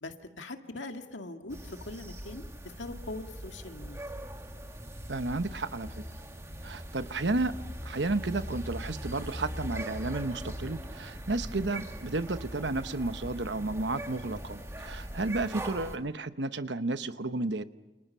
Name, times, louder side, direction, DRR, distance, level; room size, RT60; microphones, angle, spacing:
voice 1, 0.0-4.0 15.6-16.0, left 2 dB, 80° left, 5 dB, 2.0 m, -42 dB
sound 1, 1.5-16.0, equal, 15° right, 1.9 m, -41 dB
voice 2, 5.1-6.0 6.6-17.6, right 2 dB, 70° right, 11 dB, 1.0 m, -32 dB
29.0 x 29.0 x 5.6 m, 1.1 s
head